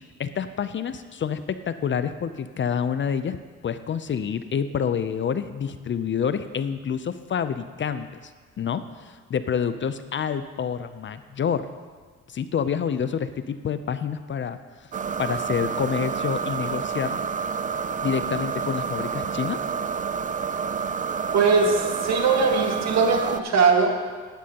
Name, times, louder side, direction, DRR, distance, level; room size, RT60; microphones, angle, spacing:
voice 1, 0.2-3.4 3.6-8.3 8.6-11.7 12.3-14.9 15.2-17.2 18.0-19.6, left 7 dB, 40° left, 12 dB, 0.5 m, -28 dB
sound 1, 14.9-23.4, right 6 dB, 25° right, 0.3 m, -29 dB
voice 2, 21.3-24.0, right 4 dB, 60° right, 2 dB, 1.7 m, -20 dB
11.5 x 11.5 x 2.9 m, 1.5 s
cardioid pair, 90°, 30 cm